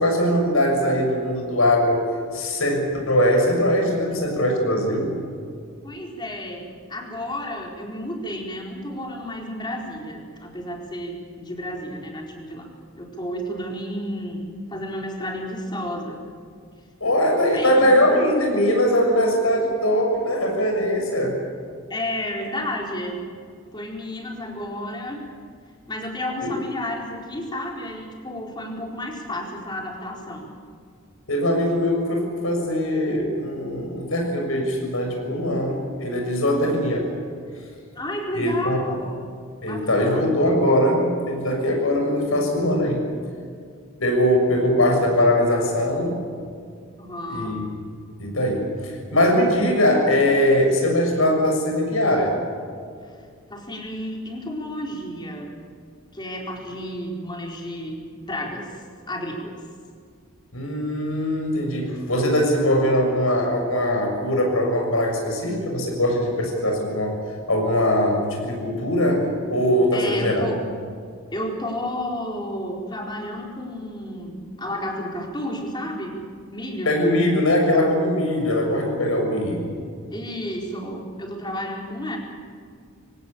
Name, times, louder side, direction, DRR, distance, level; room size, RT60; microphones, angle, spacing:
voice 1, 0.0-2.1 2.3-5.2 17.0-21.4 26.4-26.5 31.3-37.1 38.3-39.0 39.6-43.1 44.0-46.2 47.3-47.6 48.2-52.4 60.5-67.1 67.5-70.5 76.8-79.8, left 1 dB, 90° left, 2 dB, 6.7 m, -21 dB
voice 2, 5.8-12.7 12.9-16.2 17.5-18.0 21.9-23.2 23.7-25.3 25.9-30.5 37.9-39.2 39.6-40.5 47.0-47.6 53.5-55.5 56.1-59.6 69.9-70.6 71.3-76.1 76.5-76.9 80.1-82.2, left 1 dB, 20° left, 0 dB, 4.4 m, -31 dB
25.0 x 18.0 x 8.8 m, 2.2 s
head